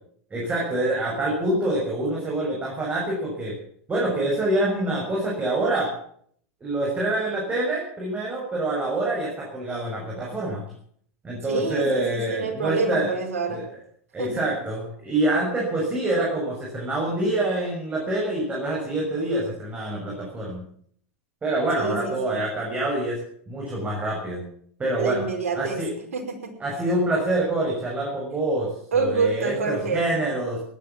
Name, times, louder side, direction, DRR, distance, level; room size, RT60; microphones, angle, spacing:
voice 1, 0.3-3.5 3.9-5.9 6.6-10.6 11.2-13.1 13.5-13.6 14.1-20.6 21.4-23.2 23.5-24.4 24.8-25.2 25.5-25.9 26.6-30.6, right 1 dB, 20° right, -3 dB, 6.7 m, -26 dB
voice 2, 11.5-13.6 14.2-14.3 21.8-22.4 25.0-25.8 26.1-26.5 28.9-30.0, right 4 dB, 80° right, 3 dB, 5.2 m, -27 dB
16.5 x 11.5 x 7.5 m, 0.62 s
hypercardioid pair, 100°, 8 cm